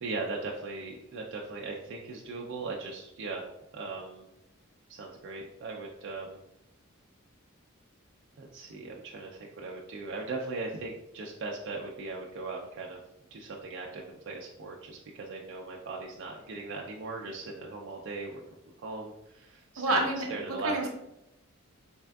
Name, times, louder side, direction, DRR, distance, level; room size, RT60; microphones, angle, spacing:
voice 1, 0.0-4.3 4.9-6.4 8.4-13.0 13.3-18.4 18.8-20.9, right 3 dB, 60° right, -1 dB, 0.4 m, -39 dB
voice 2, 19.8-20.9, right 2 dB, 85° right, 2 dB, 0.7 m, -29 dB
3.5 x 3.3 x 2.2 m, 0.85 s
head